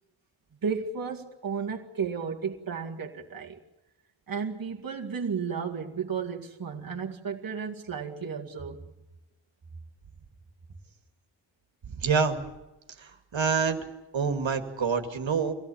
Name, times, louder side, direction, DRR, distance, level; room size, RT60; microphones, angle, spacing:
voice 1, 0.6-3.6 4.3-8.8, right 6 dB, 45° right, 2.3 m, -33 dB
voice 2, 12.0-12.4 13.3-13.8 14.1-15.5, right 5 dB, 70° right, 2.5 m, -26 dB
25.0 x 17.5 x 8.7 m
wide cardioid pair, 130°, 48 cm